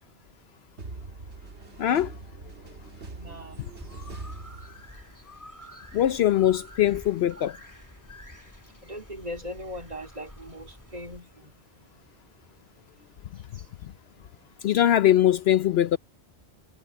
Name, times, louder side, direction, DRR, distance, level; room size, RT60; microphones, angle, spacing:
sound 1, 0.8-5.2, right 3 dB, 80° right, 2.1 m, -42 dB
voice 1, 1.8-2.1 5.9-7.6 14.6-16.0, left 11 dB, 70° left, 0.8 m, -21 dB
voice 2, 3.1-3.6 8.8-11.9 13.5-13.7, equal, 35° right, 2.8 m, -40 dB
sound 2, 3.8-11.2, left 1 dB, 15° left, 2.8 m, -48 dB
omnidirectional pair, 1.1 m